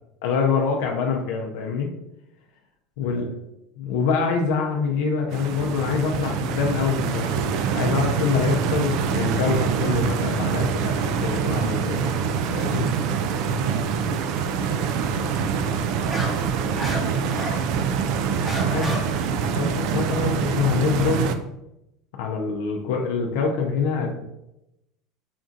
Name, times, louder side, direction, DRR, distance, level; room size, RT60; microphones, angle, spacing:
voice 1, 0.2-1.9 3.0-3.2 3.8-7.5 7.7-12.1 12.5-12.9 18.7-19.0 19.5-21.3 22.1-24.3, left 5 dB, 75° left, 1 dB, 0.5 m, -25 dB
voice 2, 3.0-3.4 13.6-14.0 14.4-18.0, left 3 dB, 35° left, -1 dB, 1.0 m, -44 dB
Stream, 5.3-21.3, right 6 dB, 60° right, 0.3 m, -25 dB
sound 1, 13.4-13.7 15.6-17.6 18.0-19.0, equal, 20° right, 0.9 m, -32 dB
5.9 x 2.6 x 2.4 m, 0.87 s
supercardioid pair, 110°, 0 cm